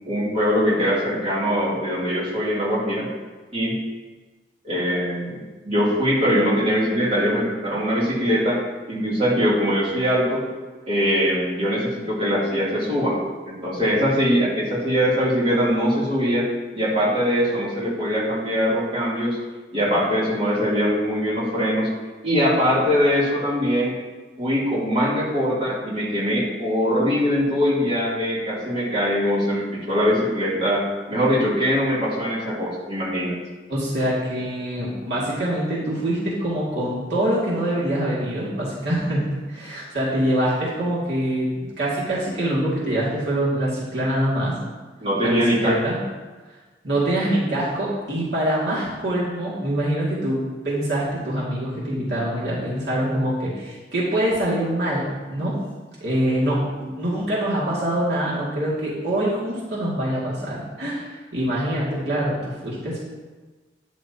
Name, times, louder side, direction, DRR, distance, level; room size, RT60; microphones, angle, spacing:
voice 1, 0.1-3.1 3.5-3.7 4.6-8.6 8.9-10.4 10.8-13.2 13.4-16.5 16.7-19.4 19.7-21.9 22.2-23.9 24.4-33.4 45.0-45.8, equal, 35° right, -8 dB, 3.2 m, -22 dB
voice 2, 33.7-44.6 45.2-46.0 46.8-55.6 56.0-63.0, right 1 dB, 65° right, -7 dB, 2.5 m, -24 dB
11.5 x 10.5 x 3.0 m, 1.3 s
head